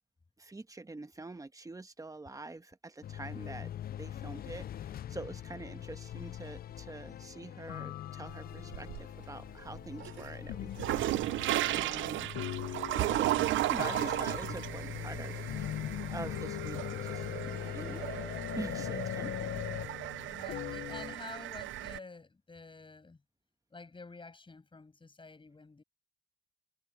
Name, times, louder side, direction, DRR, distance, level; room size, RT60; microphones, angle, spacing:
voice 1, 0.4-3.7 4.0-11.1 11.7-12.4 13.0-15.4 16.1-18.3 18.6-19.5, right 2 dB, 15° right, 1.3 m, -45 dB
sound 1, 3.0-19.9, left 11 dB, 50° left, 0.5 m, -44 dB
sound 2, 6.1-6.9 7.7-8.8 10.5-11.1 12.3-13.5 13.8-21.2, left 12 dB, 80° left, 1.0 m, -41 dB
sound 3, 8.3-9.2 9.7-22.0, right 15 dB, 75° right, 0.5 m, -35 dB
voice 2, 11.9-12.3 20.3-23.2 23.7-25.8, left 3 dB, 25° left, 7.1 m, -49 dB
cardioid pair, 90°, 20 cm